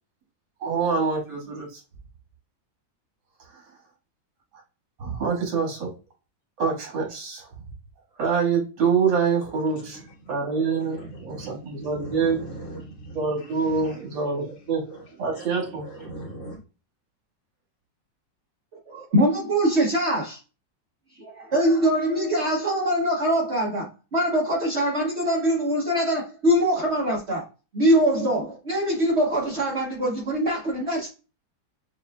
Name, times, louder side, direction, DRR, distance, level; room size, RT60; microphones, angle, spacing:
voice 1, 0.6-1.8 3.4-3.6 5.0-5.9 6.6-7.5 8.1-12.4 13.1-14.9 15.2-15.9, right 5 dB, 85° right, 2.4 m, -26 dB
voice 2, 9.4-10.0 10.5-14.5 14.9-15.1 15.4-16.6, right 1 dB, 75° left, 2.3 m, -41 dB
voice 3, 18.9-20.4 21.2-27.4 27.7-31.1, equal, 50° right, 0.8 m, -23 dB
6.5 x 2.5 x 2.2 m
omnidirectional pair, 2.1 m